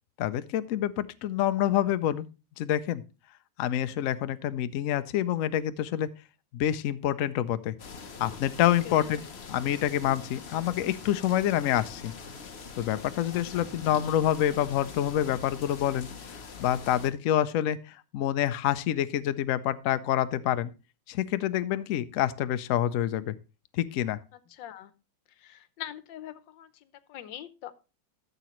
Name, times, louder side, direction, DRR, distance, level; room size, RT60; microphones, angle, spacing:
voice 1, 0.2-2.3 2.6-3.0 3.6-6.1 6.5-7.7 8.2-9.2 9.5-12.1 12.8-16.1 16.6-20.7 21.1-23.3 23.7-24.2, left 11 dB, 70° left, 12 dB, 0.8 m, -27 dB
sound 1, 7.8-17.1, left 5 dB, 45° left, 1.0 m, -43 dB
voice 2, 24.5-24.9 25.4-27.7, left 11 dB, 85° left, 14 dB, 1.5 m, -43 dB
13.0 x 6.7 x 3.0 m, 0.30 s
omnidirectional pair, 1.9 m